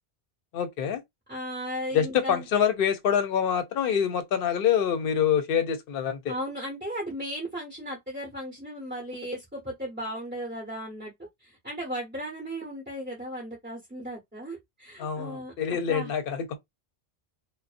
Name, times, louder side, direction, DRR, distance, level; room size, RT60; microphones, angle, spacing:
voice 1, 0.5-1.0 1.9-6.4 15.0-16.6, left 8 dB, 65° left, 0.7 m, -26 dB
voice 2, 1.3-2.5 6.3-11.1 11.4-15.5 15.9-16.1, equal, 10° right, 0.8 m, -36 dB
2.5 x 2.1 x 2.4 m
omnidirectional pair, 1.0 m